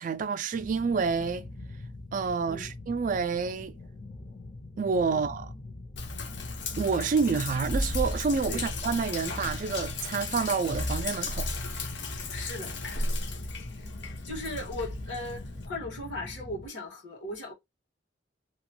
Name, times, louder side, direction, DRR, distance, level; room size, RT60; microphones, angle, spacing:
voice 1, 0.0-1.5 2.1-3.7 4.8-5.5 6.8-11.5, right 5 dB, 45° right, 0.3 m, -28 dB
sound 1, 0.5-16.7, left 2 dB, 30° left, 0.5 m, -44 dB
Sink (filling or washing), 6.0-15.7, left 2 dB, 70° left, 0.8 m, -34 dB
voice 2, 12.3-12.8 14.2-17.5, left 1 dB, 85° left, 1.6 m, -37 dB
2.9 x 2.2 x 2.9 m
head